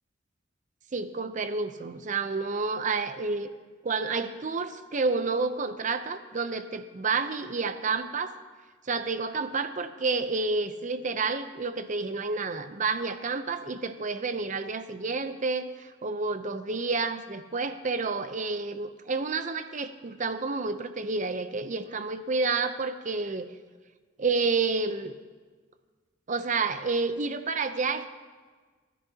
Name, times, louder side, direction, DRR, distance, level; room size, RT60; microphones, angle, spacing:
voice 1, 0.9-3.5 3.8-8.3 8.9-23.5 24.2-25.1 26.3-28.1, right 4 dB, 40° right, 10 dB, 0.6 m, -30 dB
29.0 x 10.0 x 2.8 m, 1.4 s
head